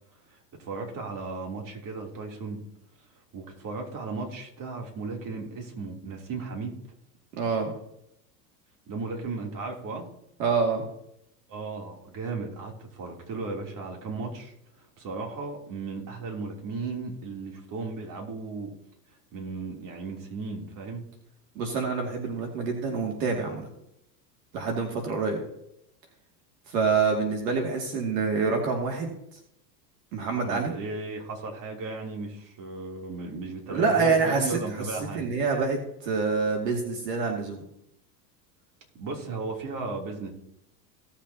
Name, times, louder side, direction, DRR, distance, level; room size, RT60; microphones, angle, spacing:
voice 1, 0.3-2.6 3.3-6.8 8.9-10.0 11.5-18.7 19.3-21.0 30.4-35.6 38.9-40.3, right 3 dB, 40° right, 1 dB, 3.2 m, -35 dB
voice 2, 7.4-7.7 10.4-10.8 21.6-23.7 24.5-25.5 26.7-29.1 30.1-30.7 33.7-34.6 35.1-37.6, right 4 dB, 75° right, 2 dB, 2.6 m, -26 dB
17.5 x 7.2 x 2.9 m, 0.77 s
hypercardioid pair, 100°, 49 cm